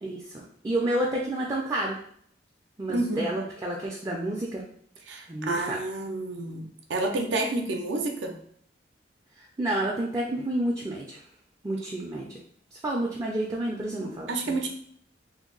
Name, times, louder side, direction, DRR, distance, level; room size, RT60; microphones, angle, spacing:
voice 1, 0.0-2.0 2.8-4.6 5.3-5.8 9.4-11.2 11.6-12.4 12.7-14.7, right 1 dB, 20° right, -3 dB, 0.4 m, -30 dB
voice 2, 2.9-3.2 5.1-8.4 14.0-14.7, right 2 dB, 80° right, 3 dB, 0.5 m, -30 dB
2.7 x 2.0 x 3.8 m, 0.64 s
head